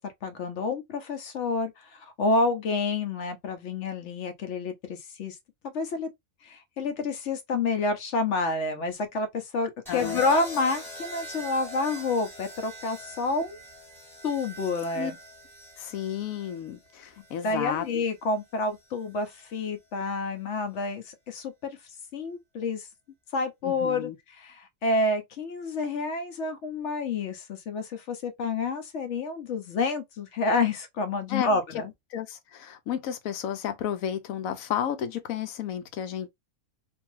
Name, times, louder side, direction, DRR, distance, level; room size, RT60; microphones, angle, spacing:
voice 1, 0.0-5.3 5.6-6.1 6.4-13.6 14.2-15.2 17.4-21.8 22.1-22.9 23.3-24.1 24.4-31.9, left 3 dB, 65° left, 0.9 m, -29 dB
voice 2, 9.9-10.2 14.9-15.1 15.8-17.9 23.6-24.2 31.3-31.5 32.1-36.3, left 9 dB, 85° left, 1.0 m, -32 dB
sound 1, 9.9-18.0 19.2-19.6, equal, ahead, 1.0 m, -43 dB
2.6 x 2.3 x 3.0 m
omnidirectional pair, 1.4 m